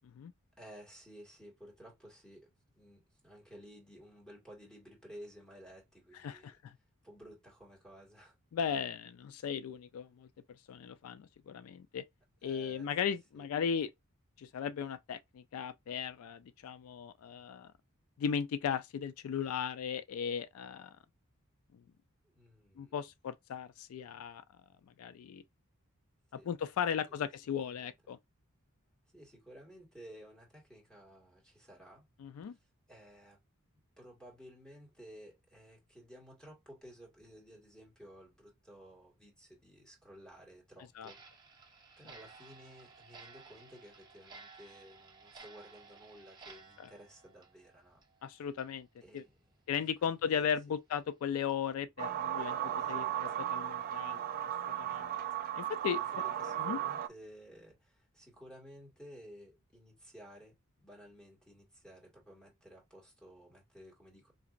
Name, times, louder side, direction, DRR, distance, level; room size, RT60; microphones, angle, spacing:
voice 1, 0.6-6.5 7.0-8.3 12.4-13.5 22.2-23.0 26.3-26.5 27.0-27.3 27.6-27.9 29.1-32.1 32.4-33.4 34.0-41.2 41.6-41.7 42.0-48.0 48.3-48.5 49.0-50.8 52.8-53.4 54.8-55.1 55.9-64.3, equal, 5° left, 1.7 m, -55 dB
voice 2, 6.2-6.7 8.5-10.3 10.7-12.0 12.4-13.9 14.4-17.7 18.2-21.0 21.7-21.8 22.8-24.4 25.0-25.4 26.3-28.2 32.2-32.6 41.0-41.1 48.2-48.9 49.1-49.2 49.7-54.5 54.8-55.1 55.6-56.0 56.6-56.8, left 7 dB, 75° left, 0.3 m, -37 dB
Clock, 41.0-48.2 48.5-48.7 49.2-49.3 49.7-49.8 50.3-50.4 50.9-51.0 51.5-51.7, right 4 dB, 20° right, 0.7 m, -56 dB
sound 1, 52.0-57.1, right 11 dB, 40° right, 0.3 m, -36 dB
4.0 x 2.9 x 2.5 m
head